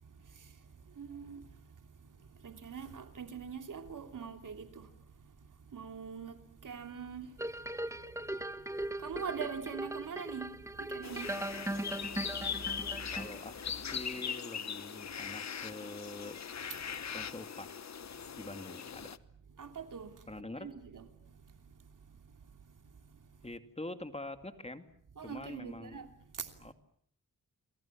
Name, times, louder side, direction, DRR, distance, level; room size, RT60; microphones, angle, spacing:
voice 1, 0.0-5.3 5.6-8.7 9.0-13.1 16.7-16.8 19.6-20.2 20.6-21.7 22.3-22.4 22.6-23.2 25.2-26.6, right 6 dB, 70° right, 3.0 m, -45 dB
sound 1, 7.4-13.7 14.2-14.3, right 1 dB, 10° right, 1.4 m, -39 dB
sound 2, 11.0-19.2, left 7 dB, 55° left, 1.0 m, -40 dB
voice 2, 13.0-16.4 17.1-17.9 18.4-19.1 20.3-20.7 23.4-24.9 25.2-26.0 26.6-26.7, left 2 dB, 20° left, 2.3 m, -45 dB
30.0 x 22.5 x 7.3 m
cardioid pair, 70°, 33 cm